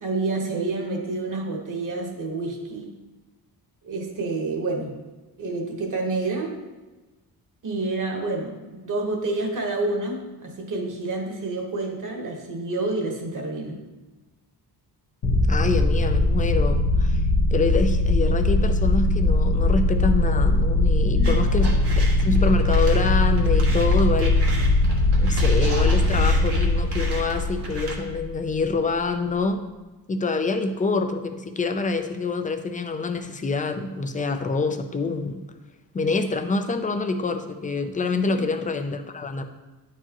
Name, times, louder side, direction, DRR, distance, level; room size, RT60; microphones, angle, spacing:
voice 1, 0.0-2.9 3.8-4.9 5.4-6.5 7.6-13.8 21.1-21.8 38.2-38.5, right 2 dB, 50° right, 2 dB, 1.2 m, -29 dB
sound 1, 15.2-28.5, left 2 dB, 90° left, 1.3 m, -20 dB
voice 2, 15.5-17.2 17.5-21.7 22.2-24.4 25.2-29.6 30.1-35.4 35.9-39.4, left 3 dB, 20° left, 7 dB, 0.4 m, -26 dB
sound 2, 21.2-27.9, right 2 dB, 85° right, 1.4 m, -35 dB
9.8 x 4.7 x 2.9 m, 1.2 s
wide cardioid pair, 150°, 40 cm